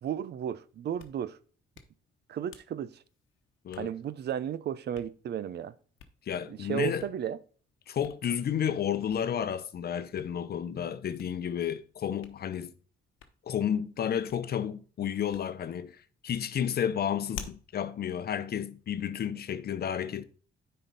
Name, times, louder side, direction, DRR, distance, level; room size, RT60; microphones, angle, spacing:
voice 1, 0.0-1.4 2.3-3.0 3.8-5.7 6.5-7.4, right 10 dB, 55° right, 0.6 m, -34 dB
Hands, 0.7-19.3, left 8 dB, 80° left, 1.0 m, -54 dB
voice 2, 6.3-7.1 7.9-12.7 13.5-20.2, left 9 dB, 50° left, 0.7 m, -31 dB
9.8 x 4.4 x 4.0 m
cardioid pair, 90°, 20 cm